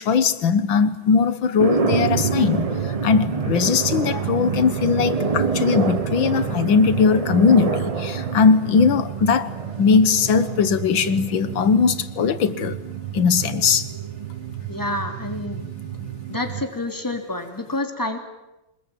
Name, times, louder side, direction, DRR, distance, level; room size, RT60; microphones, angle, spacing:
voice 1, 0.0-9.5 9.8-12.8 13.1-13.9, left 5 dB, 75° left, 13 dB, 2.1 m, -19 dB
sound 1, 1.6-12.0, right 4 dB, 30° right, 0.7 m, -27 dB
sound 2, 1.9-16.7, right 9 dB, 85° right, 2.1 m, -31 dB
voice 2, 14.7-15.6 16.3-18.2, left 2 dB, 10° left, 5 dB, 2.9 m, -28 dB
26.0 x 20.5 x 9.2 m, 0.98 s
omnidirectional pair, 2.1 m